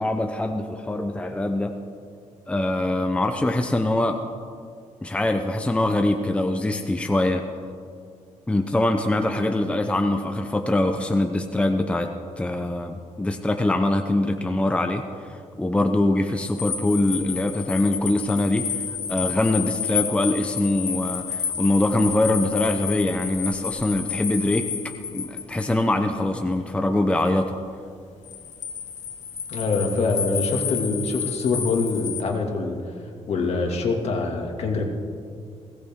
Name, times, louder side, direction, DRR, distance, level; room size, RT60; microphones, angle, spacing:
voice 1, 0.0-1.8 2.5-4.2 5.0-7.4 8.5-12.1 12.4-24.7 25.1-27.6, left 1 dB, 10° left, 5 dB, 0.8 m, -23 dB
sound 1, 16.4-25.7 28.2-32.2, left 8 dB, 75° left, 1.5 m, -31 dB
voice 2, 29.5-32.8 33.3-34.8, left 3 dB, 55° left, 1 dB, 2.4 m, -24 dB
20.5 x 17.5 x 3.8 m, 2.3 s
cardioid pair, 125°, 13 cm